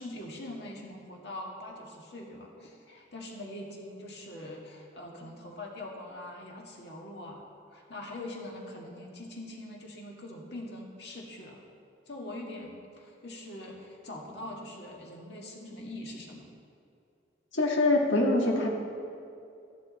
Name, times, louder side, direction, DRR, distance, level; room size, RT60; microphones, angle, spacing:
voice 1, 0.0-7.4 7.7-11.6 12.1-16.5, left 1 dB, 60° left, -1 dB, 1.9 m, -43 dB
voice 2, 17.5-18.7, left 2 dB, 85° left, -1 dB, 1.9 m, -24 dB
13.5 x 10.5 x 4.2 m, 2.5 s
head